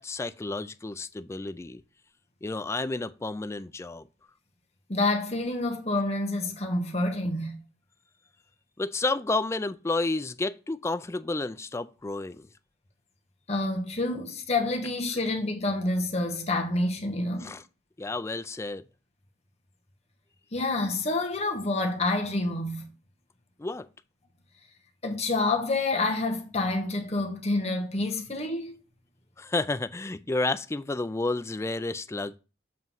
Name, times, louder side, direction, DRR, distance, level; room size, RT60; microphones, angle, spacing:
voice 1, 0.0-1.8 2.4-4.1 8.8-12.5 17.4-17.6 18.0-18.8 23.6-23.9 29.4-32.4, left 2 dB, 15° left, 0.3 m, -31 dB
voice 2, 4.9-7.6 13.5-17.6 20.5-22.9 25.0-28.8, left 2 dB, 35° left, 1.2 m, -28 dB
7.6 x 3.0 x 5.4 m
head